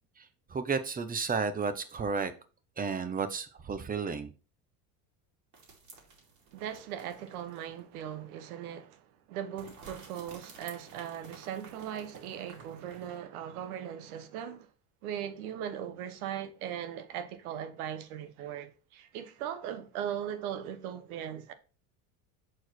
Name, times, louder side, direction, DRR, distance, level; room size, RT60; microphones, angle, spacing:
voice 1, 0.2-2.3 2.8-4.3, right 5 dB, 20° right, 0.9 m, -32 dB
sound 1, 5.5-7.8 8.2-8.3 9.6-13.2, right 4 dB, 40° right, 2.6 m, -53 dB
voice 2, 6.5-14.7 15.0-21.5, right 9 dB, 85° right, 1.1 m, -39 dB
6.5 x 4.5 x 4.3 m
supercardioid pair, 110°, 43 cm